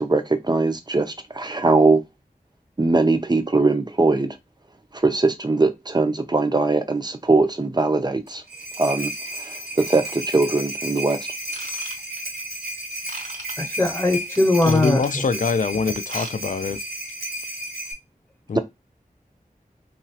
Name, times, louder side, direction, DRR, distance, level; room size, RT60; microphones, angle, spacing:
voice 1, 0.0-2.0 2.8-4.4 4.9-8.4 8.8-11.2 18.5-18.6, right 3 dB, 25° right, 0.5 m, -21 dB
sound 1, 8.3-17.9, right 1 dB, 90° right, 1.0 m, -33 dB
Ratchet pawl / Tools, 11.5-12.4 13.1-13.5 14.3-15.3 15.9-16.3 16.6-16.8 17.3-17.4, right 1 dB, 55° right, 0.8 m, -38 dB
voice 2, 13.6-15.2, left 2 dB, 15° left, 0.8 m, -20 dB
voice 3, 14.7-16.8 18.5-18.6, left 5 dB, 55° left, 0.4 m, -24 dB
2.9 x 2.4 x 2.7 m
wide cardioid pair, 45°, 16 cm